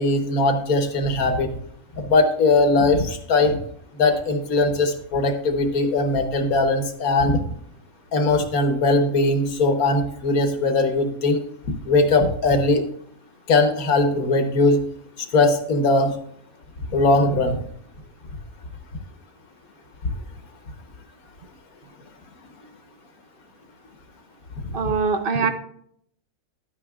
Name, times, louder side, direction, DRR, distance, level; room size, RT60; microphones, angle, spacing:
voice 1, 0.0-1.5 2.0-3.6 4.0-7.4 8.1-11.4 11.9-12.8 13.5-14.8 15.3-16.1 16.9-17.6, left 2 dB, 70° left, 6 dB, 1.5 m, -20 dB
voice 2, 24.7-25.5, right 5 dB, 50° right, 7 dB, 0.7 m, -22 dB
12.0 x 9.1 x 2.4 m, 0.66 s
omnidirectional pair, 1.6 m